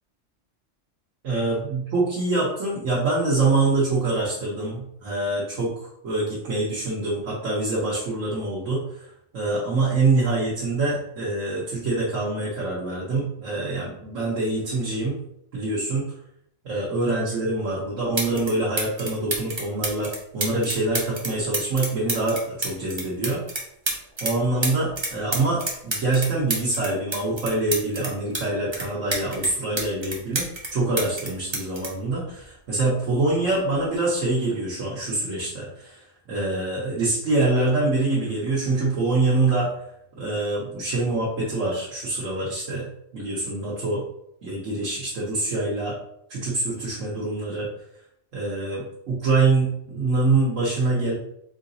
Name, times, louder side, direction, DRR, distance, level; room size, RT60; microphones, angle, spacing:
voice 1, 1.2-9.1 9.3-15.2 15.5-16.1 16.6-23.4 24.2-39.7 40.2-42.9 43.1-44.0 44.4-46.0 46.3-47.7 48.3-51.1, right 2 dB, 85° right, -7 dB, 1.3 m, -25 dB
sound 1, 17.7-17.8 18.2-18.5 18.8-24.3 24.6-28.4 28.7-30.7 31.0-32.8 33.7-34.0, right 2 dB, 25° right, 0.7 m, -29 dB
3.9 x 3.9 x 2.7 m, 0.74 s
omnidirectional pair, 1.3 m